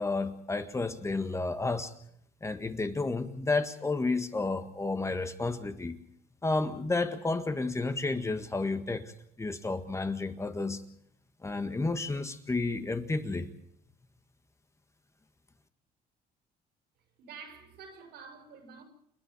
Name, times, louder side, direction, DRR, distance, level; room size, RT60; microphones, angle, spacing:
voice 1, 0.0-1.9 2.4-6.0 6.4-9.1 9.4-10.8 11.4-13.5, left 3 dB, 15° left, 1.7 m, -31 dB
voice 2, 17.2-18.8, right 5 dB, 75° right, 6.3 m, -48 dB
29.5 x 10.0 x 9.9 m
cardioid pair, 110°, 17 cm